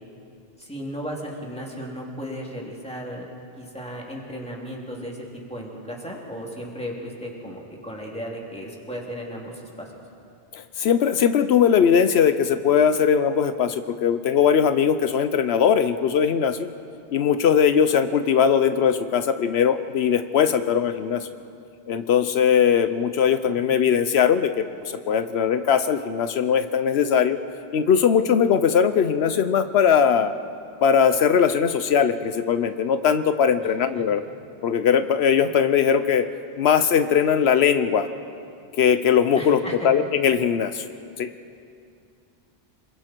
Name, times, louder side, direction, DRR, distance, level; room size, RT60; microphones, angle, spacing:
voice 1, 0.6-3.3 3.6-5.2 5.5-9.9 23.4-23.6 33.6-34.0 39.3-39.9, equal, 5° left, -3 dB, 3.1 m, -35 dB
voice 2, 10.5-16.7 17.1-21.3 21.9-27.4 27.7-30.3 30.8-34.2 34.6-36.2 36.6-38.1 38.8-40.8 41.2-41.3, left 7 dB, 80° left, 10 dB, 1.0 m, -20 dB
27.0 x 22.0 x 4.5 m, 2.5 s
omnidirectional pair, 1.1 m